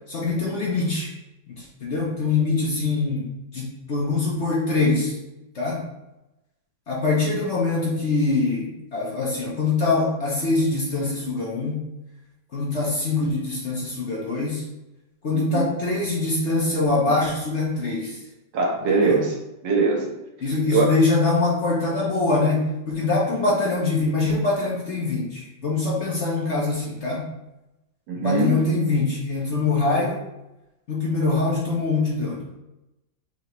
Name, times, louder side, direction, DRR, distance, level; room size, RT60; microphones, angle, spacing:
voice 1, 0.1-1.1 1.5-5.1 5.5-5.8 6.9-11.9 12.5-14.6 15.2-18.2 19.0-19.2 20.4-27.2 28.2-30.2 30.9-32.4, left 3 dB, 50° left, -4 dB, 0.9 m, -23 dB
voice 2, 15.3-15.7 18.5-19.4 19.6-20.1 20.7-20.9 28.1-28.6, right 4 dB, 75° right, -2 dB, 1.7 m, -21 dB
5.6 x 2.9 x 3.0 m, 0.94 s
omnidirectional pair, 2.0 m